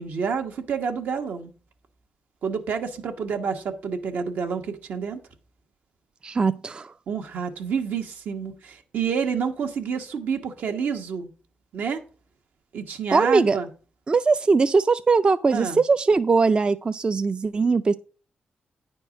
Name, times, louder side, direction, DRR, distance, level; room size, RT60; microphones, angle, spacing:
voice 1, 0.0-1.5 2.4-5.2 7.1-11.3 11.7-12.0 12.7-13.7 15.5-15.8, right 6 dB, 80° right, 1.1 m, -28 dB
voice 2, 6.2-6.9 13.1-13.6 14.1-17.9, right 4 dB, 30° right, 0.3 m, -20 dB
9.8 x 4.4 x 6.2 m
cardioid pair, 100°, 3 cm